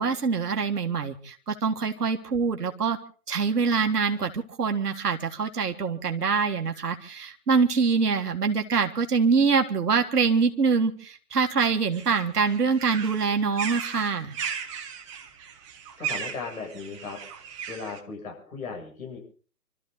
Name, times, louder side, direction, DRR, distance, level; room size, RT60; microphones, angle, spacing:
voice 1, 0.0-3.0 3.3-14.4, right 5 dB, 65° right, 5 dB, 1.7 m, -24 dB
sound 1, 11.9-18.0, right 7 dB, 20° right, 1.2 m, -36 dB
voice 2, 16.0-17.2 17.7-19.2, left 5 dB, 55° left, 0 dB, 7.6 m, -37 dB
26.0 x 13.5 x 4.0 m, 0.41 s
figure-of-eight pair, 145°, 50 cm